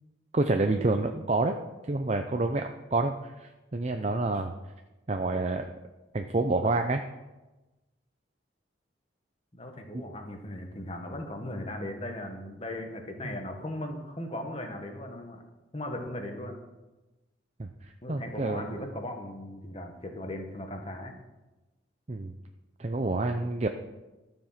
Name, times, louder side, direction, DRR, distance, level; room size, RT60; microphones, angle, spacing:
voice 1, 0.3-1.6 1.9-4.5 5.1-5.7 6.1-7.0 9.9-10.0 13.2-13.4 17.6-18.7 22.1-22.3 22.8-23.7, right 2 dB, 35° right, 5 dB, 0.5 m, -28 dB
voice 2, 9.5-15.4 15.7-16.6 18.0-21.1, left 1 dB, 30° left, 4 dB, 1.5 m, -38 dB
13.5 x 7.2 x 5.8 m, 1.1 s
head